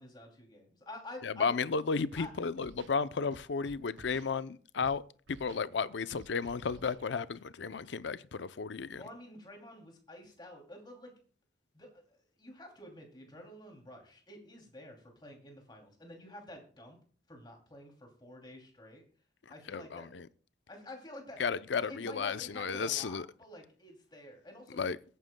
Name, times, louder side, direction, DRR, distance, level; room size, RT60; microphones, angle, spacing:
voice 1, 0.0-1.6 2.2-2.3 8.9-11.1 11.7-17.0 17.3-19.0 19.5-20.1 20.7-21.4 21.8-24.8, left 1 dB, 25° left, 2.7 m, -49 dB
voice 2, 1.2-5.0 5.3-9.0 19.7-20.3 21.4-23.3 24.8-25.0, left 5 dB, 75° left, 0.5 m, -33 dB
Scratching (performance technique), 2.1-2.3 2.6-3.0 3.3-4.3 4.8-5.0 5.3-5.7 6.2-7.0, right 3 dB, 90° right, 0.6 m, -53 dB
22.0 x 9.2 x 2.2 m
head